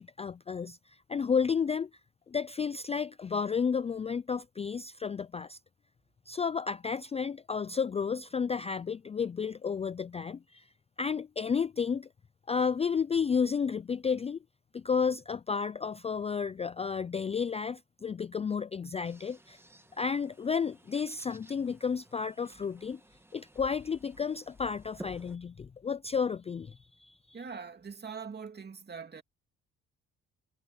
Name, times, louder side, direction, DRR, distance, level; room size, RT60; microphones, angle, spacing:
voice 1, 0.0-1.9 2.3-5.6 6.3-10.7 11.0-12.1 12.5-14.4 14.7-19.6 20.0-23.0 23.3-27.4, left 6 dB, 20° left, 0.3 m, -32 dB
sound 1, 19.0-25.4, right 1 dB, 10° right, 1.3 m, -54 dB
voice 2, 27.3-29.2, right 5 dB, 35° right, 2.6 m, -42 dB
cardioid pair, 90°, 30 cm